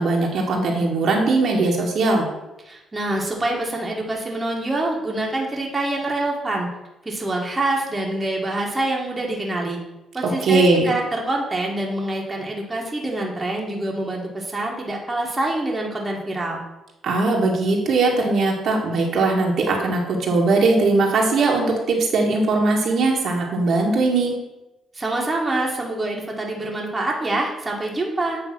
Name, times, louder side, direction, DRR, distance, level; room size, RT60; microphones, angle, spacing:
voice 1, 0.0-2.3 10.2-10.9 17.0-24.3, right 3 dB, 65° right, -1 dB, 1.7 m, -20 dB
voice 2, 2.6-6.7 7.0-9.8 10.1-16.6 24.9-28.4, right 2 dB, 20° right, -1 dB, 1.5 m, -26 dB
8.3 x 3.2 x 6.0 m, 0.99 s
cardioid pair, 90°, 0 cm